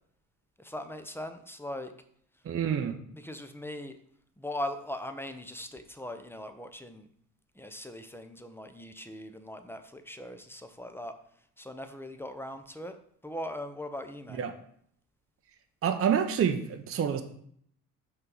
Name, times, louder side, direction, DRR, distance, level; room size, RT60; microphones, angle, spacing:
voice 1, 0.6-1.9 3.1-4.0 4.4-7.1 7.6-11.1 11.6-13.0 13.2-14.4, left 1 dB, 5° left, 0.7 m, -40 dB
voice 2, 2.4-3.0 14.3-14.5 15.8-17.2, right 8 dB, 30° right, 0.8 m, -27 dB
5.8 x 5.4 x 4.0 m
hypercardioid pair, 55°, 46 cm